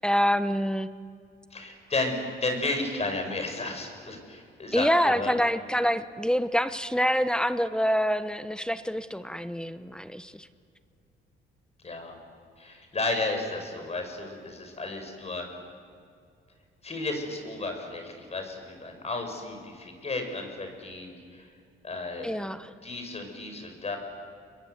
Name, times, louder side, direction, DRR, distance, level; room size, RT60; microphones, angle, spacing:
voice 1, 0.0-0.9 4.7-10.5 22.2-22.7, equal, 5° left, 12 dB, 1.0 m, -26 dB
voice 2, 1.5-5.3 11.8-12.2 12.6-15.5 16.8-21.5 21.8-22.3 22.8-24.0, left 2 dB, 30° left, 4 dB, 5.8 m, -33 dB
29.5 x 21.5 x 8.1 m, 2.3 s
cardioid pair, 90°, 20 cm